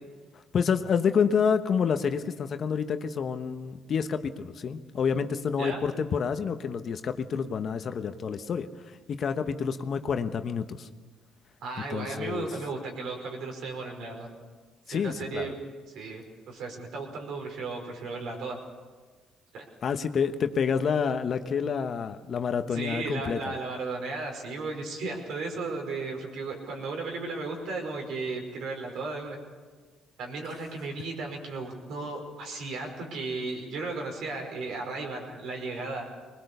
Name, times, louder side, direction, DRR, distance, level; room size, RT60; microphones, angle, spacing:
voice 1, 0.5-10.9 11.9-12.5 14.9-15.5 19.8-23.5, left 6 dB, 50° left, 8 dB, 1.1 m, -28 dB
voice 2, 11.6-14.3 14.9-18.6 19.5-19.6 22.7-29.4 30.2-36.1, right 3 dB, 70° right, 2 dB, 5.2 m, -35 dB
21.0 x 20.5 x 6.8 m, 1.4 s
supercardioid pair, 80°, 0 cm